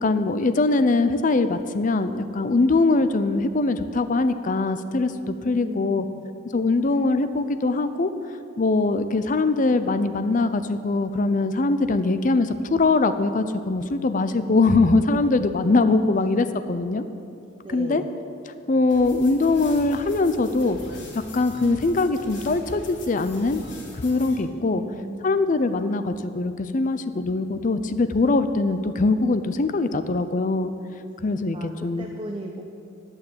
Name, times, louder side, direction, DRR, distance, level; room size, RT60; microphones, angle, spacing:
voice 1, 0.0-6.0 6.5-8.1 8.6-17.0 17.7-18.0 18.7-20.8 21.3-23.6 23.9-24.8 25.2-30.7 31.2-32.1, left 3 dB, 45° left, 11 dB, 0.5 m, -22 dB
voice 2, 5.4-6.2 16.3-16.4 17.6-18.2 24.7-25.3 31.5-31.7 32.0-32.6, right 1 dB, 30° right, 3 dB, 0.7 m, -37 dB
sound 1, 18.9-24.4, left 1 dB, 65° left, 3.4 m, -42 dB
11.0 x 6.5 x 8.6 m, 2.6 s
head